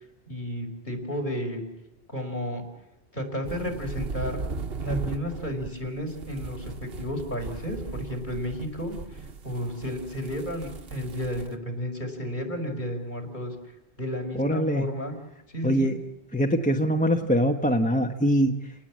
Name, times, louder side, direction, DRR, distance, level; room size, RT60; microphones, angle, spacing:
voice 1, 0.3-1.6 2.1-2.6 3.1-4.4 4.8-9.2 9.4-13.5 14.0-15.1 15.5-15.9, equal, 45° left, 3 dB, 4.9 m, -32 dB
sound 1, 3.4-11.6, right 3 dB, 60° right, 1.3 m, -37 dB
voice 2, 14.4-14.8 15.6-16.0 16.3-18.7, equal, 5° left, 4 dB, 1.0 m, -23 dB
29.5 x 18.5 x 7.5 m, 0.91 s
omnidirectional pair, 1.2 m